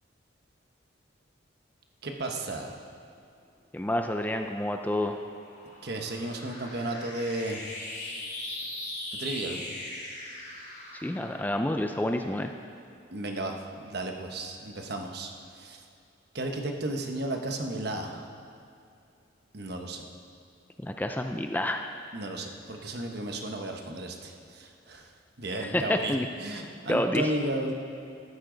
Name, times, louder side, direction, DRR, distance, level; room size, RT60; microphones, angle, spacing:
voice 1, 2.0-2.8 5.8-7.6 9.1-9.7 13.1-15.8 16.3-18.3 19.5-20.0 22.1-25.1 25.4-27.7, right 2 dB, 55° right, 3 dB, 1.2 m, -34 dB
voice 2, 3.7-5.2 10.9-12.5 20.8-21.9 25.6-26.3 26.9-27.3, left 1 dB, 10° left, 5 dB, 0.4 m, -29 dB
sound 1, 5.1-13.0, left 1 dB, 40° left, 3.8 m, -41 dB
14.0 x 13.5 x 3.9 m, 2.6 s
head